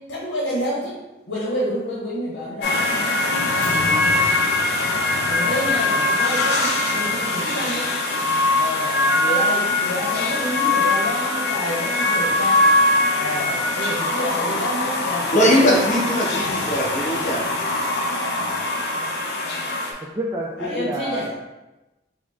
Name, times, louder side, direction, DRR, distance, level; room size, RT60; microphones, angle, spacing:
voice 1, 0.1-1.0 1.3-3.3 5.3-8.0 8.5-12.5 13.1-15.6 20.6-21.3, equal, 90° left, -6 dB, 0.9 m, -28 dB
sound 1, 2.6-19.9, left 2 dB, 60° left, 0.6 m, -22 dB
voice 2, 15.3-17.5, equal, 40° left, -4 dB, 1.0 m, -20 dB
voice 3, 20.0-21.3, right 1 dB, 20° right, -2 dB, 0.3 m, -28 dB
4.7 x 2.1 x 3.5 m, 1.0 s
head